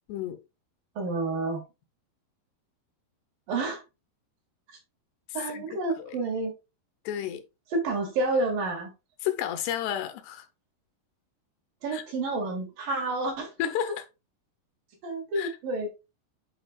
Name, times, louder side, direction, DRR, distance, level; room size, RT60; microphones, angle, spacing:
voice 1, 1.0-1.6 3.5-3.8 5.3-6.5 7.7-8.9 11.8-13.5 15.0-15.9, right 2 dB, 60° right, 3.1 m, -29 dB
voice 2, 7.1-7.4 9.2-10.5 11.9-12.0 13.6-14.1 15.4-15.6, left 10 dB, 80° left, 2.7 m, -31 dB
9.9 x 4.3 x 2.3 m
omnidirectional pair, 4.9 m